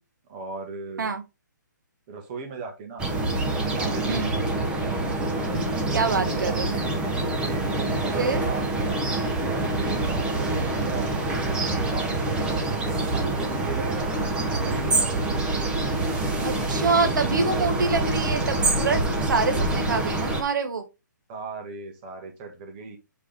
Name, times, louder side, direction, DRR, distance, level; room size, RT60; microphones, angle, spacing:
voice 1, 0.3-1.1 2.1-3.1 3.6-4.5 5.8-7.2 7.8-8.6 9.3-11.3 11.8-15.4 21.3-23.0, right 4 dB, 25° right, 2.0 m, -38 dB
sound 1, 3.0-20.4, right 2 dB, 10° right, 1.2 m, -26 dB
voice 2, 5.5-6.7 8.2-8.4 16.4-20.8, right 4 dB, 75° right, 1.6 m, -26 dB
7.7 x 4.9 x 3.6 m
hypercardioid pair, 160°, 10 cm